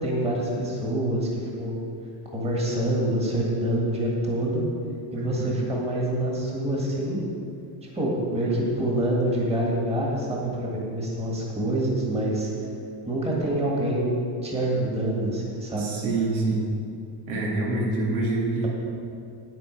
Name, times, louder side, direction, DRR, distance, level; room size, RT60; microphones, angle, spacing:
voice 1, 0.0-1.8 2.3-4.7 5.1-7.2 7.8-12.5 13.1-15.9, right 1 dB, 10° right, -3 dB, 1.8 m, -26 dB
voice 2, 5.1-5.5 8.4-8.6 15.8-16.7 17.3-18.7, right 2 dB, 85° right, -3 dB, 2.5 m, -26 dB
9.3 x 9.3 x 4.6 m, 2.4 s
cardioid pair, 140°, 49 cm